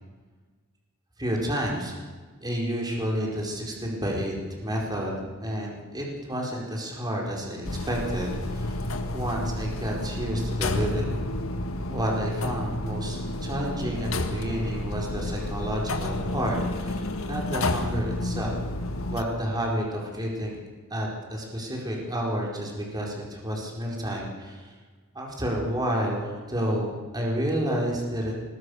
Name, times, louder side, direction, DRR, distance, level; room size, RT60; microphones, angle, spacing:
voice 1, 1.2-2.0 2.4-11.2 11.9-18.6 19.1-20.6 20.9-24.7 25.1-28.3, equal, 20° right, -1 dB, 4.8 m, -30 dB
sound 1, 7.6-19.2, left 1 dB, 65° left, 1.9 m, -30 dB
25.0 x 21.0 x 6.6 m, 1.4 s
head